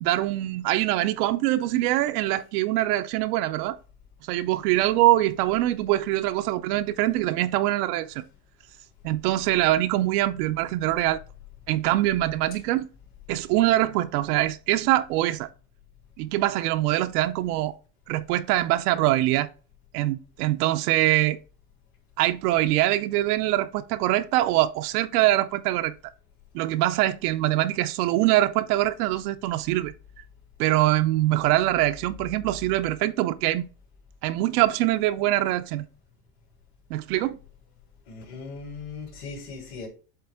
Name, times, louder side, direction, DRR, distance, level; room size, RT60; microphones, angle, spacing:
voice 1, 0.0-3.8 4.2-8.2 9.0-11.2 11.7-12.9 13.3-15.5 16.2-17.7 18.1-19.5 19.9-21.4 22.2-25.9 26.5-29.9 30.6-33.6 34.2-35.8 36.9-37.4, right 15 dB, 85° right, 0.6 m, -23 dB
voice 2, 38.1-39.9, left 4 dB, 60° left, 3.3 m, -38 dB
8.0 x 3.3 x 3.5 m
supercardioid pair, 105°, 45 cm